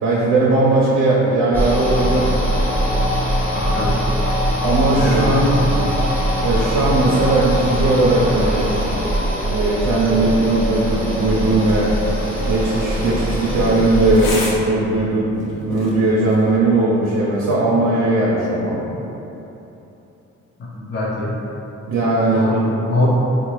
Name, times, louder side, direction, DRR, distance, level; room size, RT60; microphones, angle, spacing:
voice 1, 0.0-2.5 4.6-5.6 6.4-8.7 9.5-11.9 12.5-18.8 21.9-22.7, right 2 dB, 85° right, -5 dB, 0.6 m, -18 dB
sound 1, 1.5-14.3, equal, 5° left, 1.0 m, -21 dB
voice 2, 3.5-4.0 4.9-5.7 20.6-21.3 22.3-23.1, left 2 dB, 35° left, -5 dB, 0.6 m, -23 dB
sound 2, 5.0-14.6, right 1 dB, 40° right, 0.6 m, -38 dB
sound 3, 11.6-16.6, left 2 dB, 80° left, 0.7 m, -35 dB
3.7 x 2.2 x 3.0 m, 3.0 s
cardioid pair, 90°, 30 cm